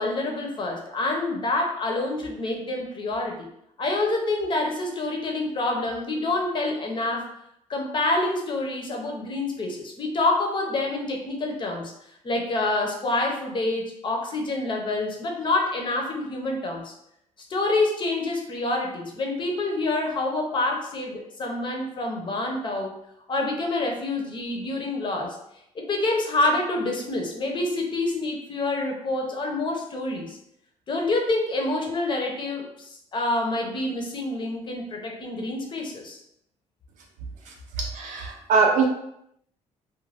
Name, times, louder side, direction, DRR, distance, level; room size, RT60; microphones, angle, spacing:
voice 1, 0.0-3.5 3.8-7.3 7.7-11.9 12.2-16.9 17.5-22.9 23.3-25.4 25.7-30.4 30.9-36.2, left 2 dB, 35° left, 1 dB, 0.7 m, -27 dB
voice 2, 37.8-38.9, right 4 dB, 70° right, 0 dB, 0.5 m, -22 dB
2.5 x 2.2 x 3.2 m, 0.77 s
cardioid pair, 105°, 13 cm